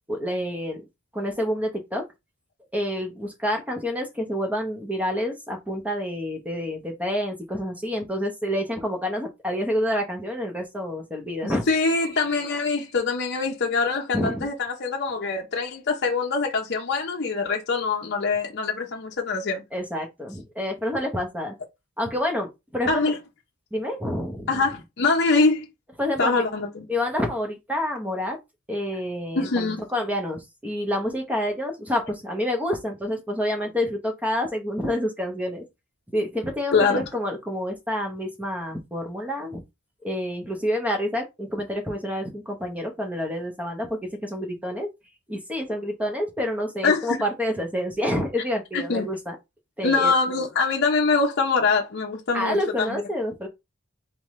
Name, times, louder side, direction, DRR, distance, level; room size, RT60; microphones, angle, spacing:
voice 1, 0.1-0.8 1.1-2.0 2.7-11.7 14.1-14.5 19.7-21.5 22.0-23.1 23.7-24.6 26.0-26.4 26.9-28.4 28.7-35.6 36.1-39.6 40.0-44.9 45.3-49.4 49.8-50.1 52.3-53.5, equal, 5° right, 0.9 m, -28 dB
voice 2, 11.4-19.6 22.9-23.2 24.5-25.7 26.2-26.8 29.3-29.8 36.7-37.0 46.8-47.2 48.7-49.0 49.8-53.0, left 4 dB, 55° left, 0.7 m, -24 dB
3.6 x 3.6 x 3.1 m
head